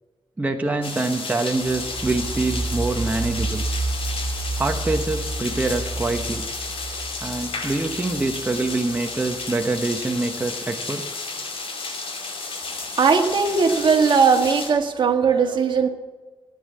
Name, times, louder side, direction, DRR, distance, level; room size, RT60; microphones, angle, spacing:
voice 1, 0.4-3.7 4.5-6.5 7.2-11.0, right 3 dB, 15° right, 3 dB, 1.0 m, -25 dB
sound 1, 0.8-14.7, left 3 dB, 85° left, 5.4 m, -32 dB
sound 2, 1.6-9.3, right 3 dB, 35° right, 4.6 m, -30 dB
voice 2, 13.0-15.9, right 5 dB, 55° right, 4 dB, 1.8 m, -18 dB
17.5 x 10.0 x 7.7 m, 1.3 s
wide cardioid pair, 135°, 9 cm